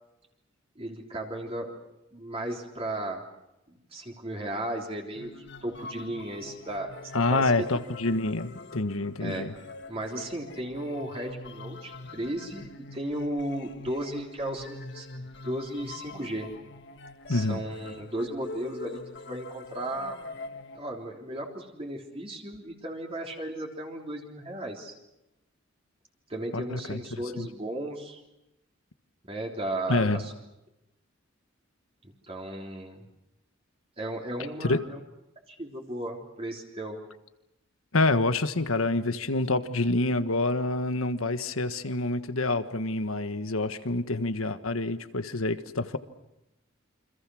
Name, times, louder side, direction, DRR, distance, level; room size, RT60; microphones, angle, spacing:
voice 1, 0.8-1.7 2.1-3.2 3.7-7.5 9.2-9.5 9.9-16.5 17.3-19.0 19.2-20.2 20.7-24.9 26.3-28.2 29.3-30.3 32.2-33.0 34.0-35.0 35.5-37.0, right 1 dB, 30° right, 0 dB, 3.5 m, -35 dB
sound 1, 5.1-21.2, left 3 dB, 60° left, 1.6 m, -44 dB
voice 2, 7.1-9.5 17.3-17.6 26.5-27.0 27.4-27.5 29.9-30.2 34.7-34.8 37.9-46.0, left 2 dB, 90° left, 10 dB, 1.5 m, -27 dB
29.0 x 26.0 x 6.3 m, 0.92 s
head